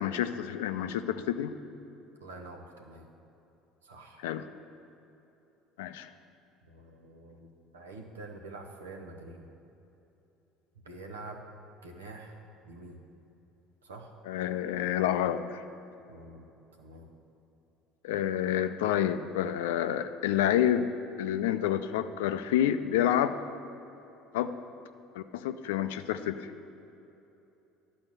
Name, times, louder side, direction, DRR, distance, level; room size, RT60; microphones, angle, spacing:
voice 1, 0.0-1.5 4.2-4.4 5.8-6.1 14.3-15.6 18.0-20.9 21.2-23.4 24.3-24.5 25.1-26.4, left 11 dB, 75° left, 10 dB, 0.4 m, -28 dB
voice 2, 2.2-3.1 3.8-4.2 6.6-9.5 10.8-11.4 11.8-13.0 13.8-14.1 16.1-16.5 16.8-17.1, right 2 dB, 85° right, 2 dB, 0.9 m, -46 dB
11.5 x 4.3 x 7.6 m, 2.9 s
hypercardioid pair, 65°, 0 cm